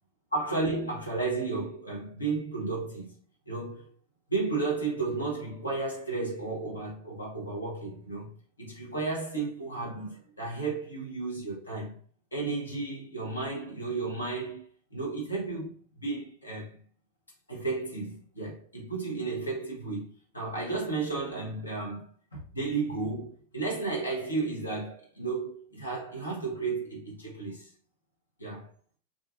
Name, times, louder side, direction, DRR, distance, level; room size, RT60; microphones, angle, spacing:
voice 1, 0.3-3.1 3.5-3.9 4.3-8.3 8.6-12.0 12.3-15.7 16.0-16.8 17.5-20.1 20.3-22.0 22.3-27.7 28.4-28.7, right 3 dB, 80° left, 0.9 m, -33 dB
2.4 x 2.3 x 2.5 m
figure-of-eight pair, 90°, 0 cm